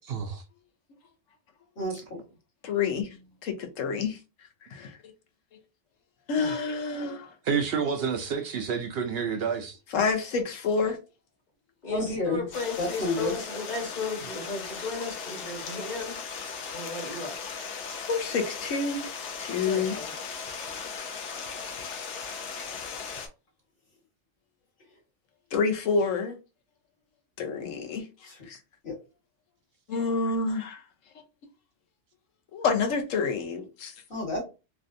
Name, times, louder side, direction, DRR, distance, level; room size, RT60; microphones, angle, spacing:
voice 1, 0.1-0.4 6.4-6.6 7.5-9.8, right 6 dB, 60° right, 0.7 m, -29 dB
voice 2, 1.8-2.2 11.9-12.5 12.8-13.3 27.6-27.7 28.3-28.4 28.8-28.9 34.1-34.4, left 2 dB, 55° left, 1.7 m, -30 dB
voice 3, 2.6-3.1 3.4-4.2 4.7-5.0 6.3-7.3 9.9-11.0 18.1-19.1 19.4-20.0 25.5-26.4 27.4-28.0 28.5-28.6 29.9-30.8 32.5-33.9, left 4 dB, 85° left, 1.1 m, -28 dB
voice 4, 11.8-17.6 19.6-20.2, left 4 dB, 35° left, 1.3 m, -35 dB
Stream, 12.5-23.3, left 5 dB, 70° left, 0.9 m, -37 dB
3.3 x 2.4 x 2.6 m
omnidirectional pair, 1.3 m